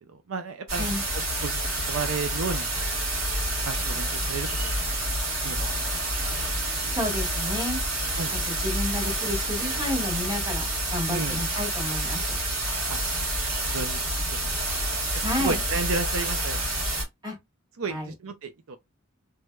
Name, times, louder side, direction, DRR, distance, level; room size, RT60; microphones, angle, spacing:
voice 1, 0.3-0.9 1.4-1.6 1.9-2.7 3.6-4.8 5.4-6.0 6.3-6.4 8.2-8.3 11.1-11.4 12.9-13.0 13.7-14.0 14.4-14.6 15.4-16.6 17.8-18.8, right 4 dB, 70° right, 0.5 m, -32 dB
sound 1, 0.7-17.0, right 1 dB, 90° right, 2.1 m, -28 dB
voice 2, 6.9-7.8 8.3-12.4 15.2-15.6 17.2-17.4 17.9-18.1, left 1 dB, 20° right, 1.6 m, -31 dB
3.2 x 3.1 x 2.3 m
head